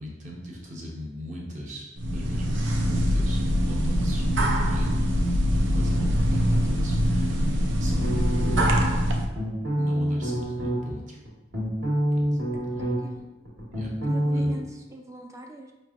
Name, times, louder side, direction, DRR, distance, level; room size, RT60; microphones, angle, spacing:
voice 1, 0.0-5.2 5.6-8.8 9.8-11.2 12.1-12.4 13.7-14.6, equal, 40° right, -2 dB, 0.8 m, -39 dB
sound 1, 2.0-9.3, equal, 85° right, 0.5 m, -23 dB
sound 2, 8.0-8.8 9.3-10.8 11.3-13.2 13.4-14.5, right 1 dB, 65° right, 1.3 m, -27 dB
voice 2, 12.8-13.2 14.1-15.7, right 3 dB, 15° right, 2 dB, 0.3 m, -41 dB
4.9 x 3.1 x 2.4 m, 1.0 s
head